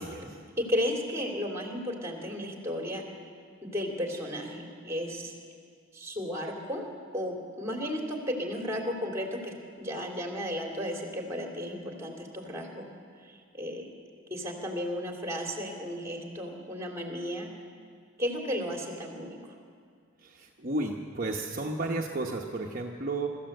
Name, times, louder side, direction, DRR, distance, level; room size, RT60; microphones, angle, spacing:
voice 1, 0.0-0.4 20.2-23.3, right 2 dB, 45° right, 0 dB, 1.0 m, -33 dB
voice 2, 0.6-3.0 3.6-5.3 5.9-6.9 7.1-12.9 13.2-13.9 14.3-17.5 18.2-19.4, equal, 15° right, 1 dB, 2.9 m, -34 dB
24.0 x 14.0 x 7.9 m, 2.2 s
head